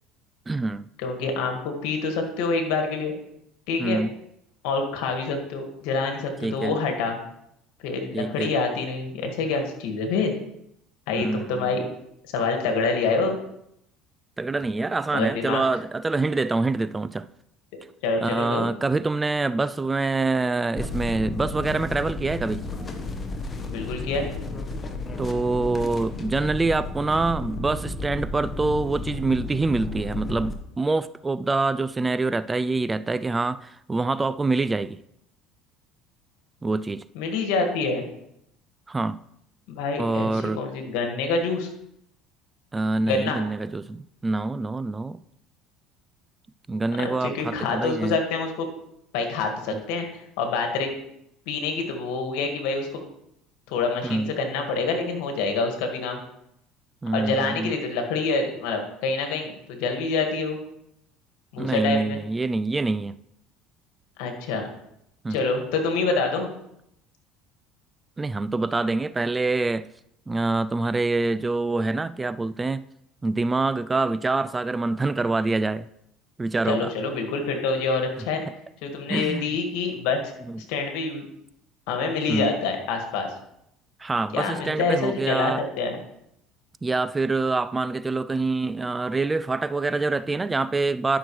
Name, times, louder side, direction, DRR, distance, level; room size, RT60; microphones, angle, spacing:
voice 1, 0.5-0.9 3.8-4.2 6.4-6.8 8.1-8.5 11.1-11.9 14.4-17.3 18.2-22.7 25.2-35.0 36.6-37.0 38.9-39.2 40.0-40.7 42.7-45.2 46.7-48.2 49.7-49.8 54.0-54.3 57.0-57.7 61.6-63.2 65.2-65.4 68.2-69.9 70.3-72.9 73.2-75.9 76.4-76.9 79.1-79.5 80.5-80.6 82.3-82.5 84.0-85.6 86.8-91.2, right 3 dB, 20° right, 0.3 m, -25 dB
voice 2, 1.0-3.1 3.7-4.0 4.6-7.1 7.8-10.3 11.1-11.8 12.3-13.4 15.1-15.6 18.0-18.7 23.7-24.3 37.2-38.1 39.7-41.7 43.1-43.4 47.0-48.7 49.1-50.9 51.5-53.0 53.7-56.2 57.1-60.6 61.5-62.2 64.2-64.6 65.3-66.5 76.7-78.4 78.8-80.2 80.6-81.3 81.9-83.3 84.3-86.0, left 4 dB, 75° left, 1.8 m, -26 dB
sound 1, 20.8-30.5, left 3 dB, 25° left, 1.2 m, -33 dB
11.5 x 6.0 x 3.2 m
supercardioid pair, 90°, 0 cm